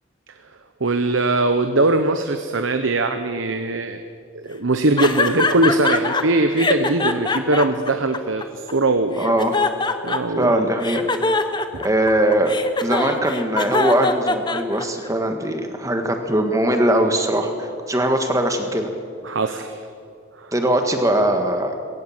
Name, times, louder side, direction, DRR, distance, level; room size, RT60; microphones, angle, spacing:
voice 1, 0.8-4.0 4.3-9.3 10.0-10.7 19.2-19.8 20.3-20.5, right 2 dB, 75° right, 8 dB, 1.0 m, -21 dB
sound 1, 5.0-6.2 6.6-8.7 9.2-10.4 10.8-15.1, left 3 dB, 20° left, 1.0 m, -22 dB
voice 2, 9.2-9.6 10.4-11.1 11.8-18.9 20.5-21.7, right 1 dB, 15° right, 5 dB, 1.7 m, -20 dB
20.0 x 18.0 x 7.4 m, 2.4 s
head